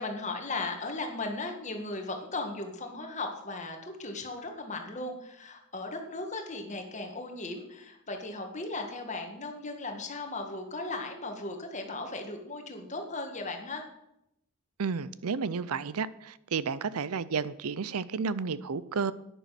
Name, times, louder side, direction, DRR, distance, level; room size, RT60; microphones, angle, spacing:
voice 1, 0.0-13.8, left 2 dB, 35° left, 1.8 m, -37 dB
voice 2, 14.8-19.1, right 5 dB, 85° right, 0.6 m, -32 dB
11.0 x 10.0 x 5.9 m
head